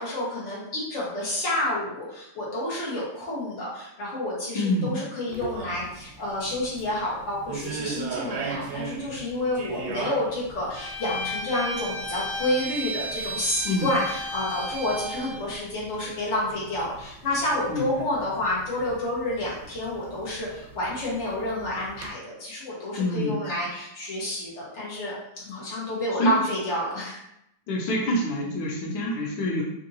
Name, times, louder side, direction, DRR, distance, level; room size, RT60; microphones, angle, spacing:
voice 1, 0.0-27.2, left 1 dB, 45° left, -6 dB, 1.3 m, -29 dB
voice 2, 4.5-4.9 13.6-13.9 17.7-18.0 23.0-23.4 26.2-26.3 27.7-29.6, left 1 dB, 85° left, -1 dB, 1.5 m, -26 dB
sound 1, 5.3-22.1, right 5 dB, 85° right, 1.4 m, -40 dB
Bowed string instrument, 10.7-15.4, equal, 20° right, 0.8 m, -33 dB
3.7 x 2.6 x 2.7 m, 0.80 s
omnidirectional pair, 2.1 m